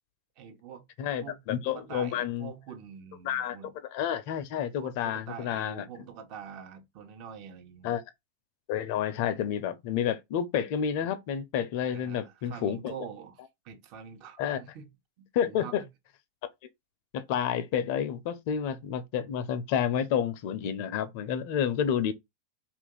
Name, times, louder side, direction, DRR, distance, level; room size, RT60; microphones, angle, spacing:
voice 1, 0.4-0.8 1.2-1.4 1.6-3.7 4.8-8.0 11.8-14.9 15.2-15.9, right 7 dB, 50° right, 1.0 m, -45 dB
voice 2, 1.0-2.5 3.2-3.6 3.9-5.8 7.8-8.0 8.7-12.9 14.4-14.6 15.3-15.8 17.1-22.1, left 9 dB, 55° left, 0.6 m, -30 dB
2.9 x 2.6 x 3.7 m
hypercardioid pair, 95°, 0 cm